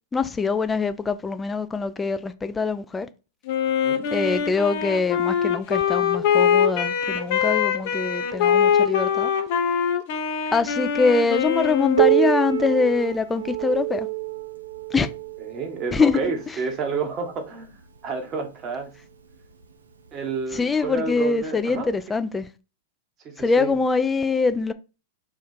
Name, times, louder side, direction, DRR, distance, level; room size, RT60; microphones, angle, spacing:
voice 1, 0.1-3.1 4.1-9.3 10.5-14.1 14.9-15.1 15.9-16.2 20.5-22.5 23.4-24.7, left 4 dB, 15° left, 0.4 m, -23 dB
Wind instrument woodwind instrument, 3.5-12.3, left 8 dB, 55° left, 0.7 m, -23 dB
Piano, 12.0-17.3 18.2-18.3 18.7-18.8 19.6-19.7 20.8-20.9, right 18 dB, 85° right, 0.6 m, -26 dB
voice 2, 15.4-17.8 18.0-18.9 20.1-21.9 23.2-23.7, right 4 dB, 35° right, 1.2 m, -30 dB
4.4 x 2.4 x 4.3 m
hypercardioid pair, 110°, 0 cm